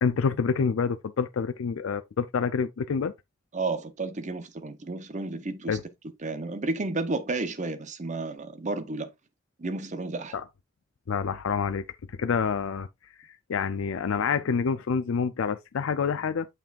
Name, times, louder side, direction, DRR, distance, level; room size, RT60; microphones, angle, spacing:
voice 1, 0.0-3.1 5.7-5.8 10.3-10.4 11.1-11.8 12.2-12.9 13.5-16.5, left 6 dB, 85° left, 0.4 m, -27 dB
voice 2, 3.5-5.8 6.2-9.1 9.6-10.3, right 3 dB, 35° right, 0.7 m, -32 dB
6.8 x 5.8 x 2.4 m
head